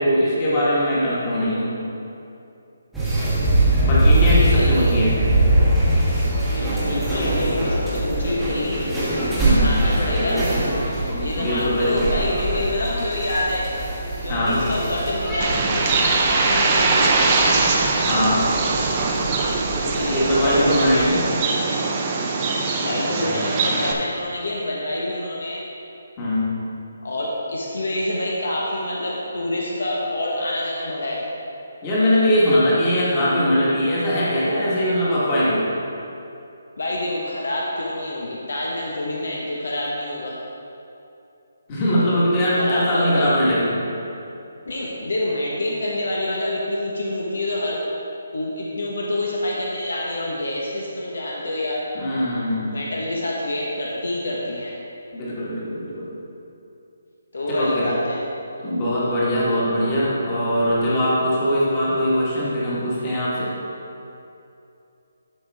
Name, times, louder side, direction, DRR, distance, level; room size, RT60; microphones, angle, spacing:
voice 1, 0.0-1.7 3.8-5.2 9.4-9.8 10.2-10.4 11.4-12.1 14.3-14.6 18.0-18.4 20.1-21.2 26.2-26.5 31.8-35.6 41.7-43.8 51.9-52.8 55.1-56.1 57.5-57.9 58.6-63.5, equal, 20° left, -8 dB, 1.6 m, -21 dB
sound 1, 2.9-21.1, right 1 dB, ahead, 1.2 m, -23 dB
voice 2, 4.2-4.9 6.5-8.9 9.6-10.5 11.2-13.7 14.2-15.9 16.2-17.4 19.8-21.3 22.8-25.6 27.0-31.2 36.8-40.4 42.6-43.3 44.6-47.8 48.3-51.8 52.7-54.8 57.3-58.2, left 1 dB, 80° left, -3 dB, 1.3 m, -27 dB
Bird, 15.4-23.9, right 3 dB, 20° right, 0.6 m, -22 dB
12.0 x 5.4 x 3.6 m, 2.7 s
hypercardioid pair, 175°, 0 cm